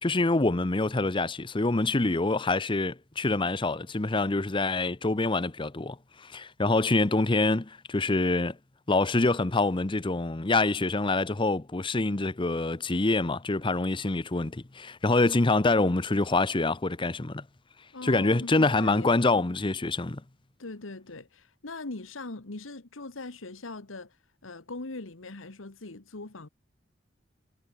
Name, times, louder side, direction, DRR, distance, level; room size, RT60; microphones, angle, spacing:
voice 1, 0.0-6.0 6.2-8.6 8.9-17.4 18.0-20.2, left 2 dB, 25° left, 0.8 m, -26 dB
voice 2, 17.9-19.2 20.6-26.5, left 2 dB, 80° left, 1.5 m, -41 dB
head